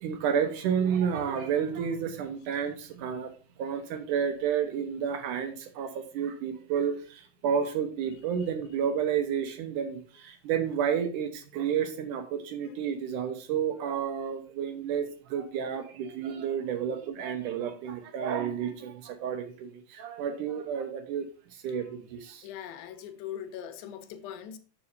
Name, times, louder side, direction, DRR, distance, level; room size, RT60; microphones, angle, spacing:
voice 1, 0.0-3.3 3.6-21.3 21.6-21.8 22.1-22.5, right 7 dB, 70° right, 2.1 m, -31 dB
voice 2, 22.4-24.6, left 10 dB, 75° left, 2.5 m, -41 dB
8.8 x 7.7 x 2.7 m
omnidirectional pair, 4.7 m